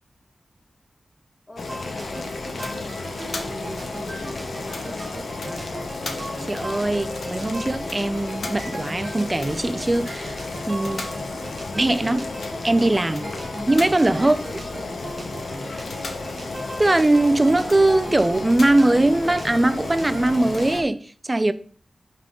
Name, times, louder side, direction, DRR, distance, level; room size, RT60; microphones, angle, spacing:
voice 1, 1.5-5.7 13.2-13.4 14.1-14.4 15.5-15.8, equal, 30° left, 2.1 m, -42 dB
Boiling, 1.6-20.8, left 3 dB, 90° left, 0.8 m, -33 dB
sound 1, 1.7-20.9, right 1 dB, 40° right, 1.2 m, -38 dB
voice 2, 6.4-10.4 10.7-11.1 11.7-12.3 12.6-13.2 13.7-14.4 16.8-21.5, right 2 dB, 25° right, 0.5 m, -20 dB
5.6 x 3.7 x 5.0 m
wide cardioid pair, 90°, 0 cm